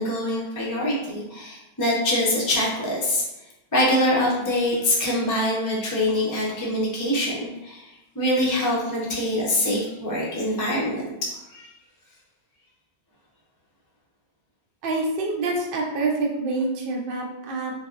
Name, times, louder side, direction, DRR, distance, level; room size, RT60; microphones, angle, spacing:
voice 1, 0.0-3.2 3.7-11.1 11.5-11.7, left 1 dB, 25° left, -4 dB, 0.5 m, -24 dB
voice 2, 14.8-17.7, right 3 dB, 65° right, 0 dB, 0.7 m, -26 dB
3.3 x 2.0 x 2.4 m, 0.96 s
omnidirectional pair, 1.1 m